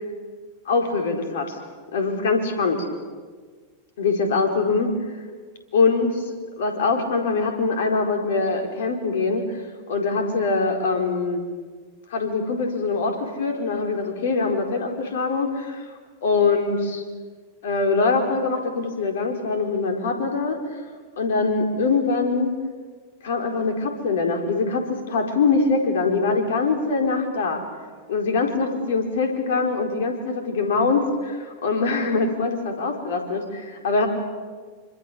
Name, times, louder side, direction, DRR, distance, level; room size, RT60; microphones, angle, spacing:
voice 1, 0.7-1.6 1.9-2.9 4.0-4.9 5.7-6.2 6.6-9.4 9.9-11.4 12.1-15.9 16.2-17.0 17.6-20.6 21.2-22.5 23.2-27.6 28.1-34.1, left 4 dB, 65° left, 4 dB, 4.6 m, -23 dB
26.5 x 25.5 x 7.1 m, 1.5 s
figure-of-eight pair, 90°, 0 cm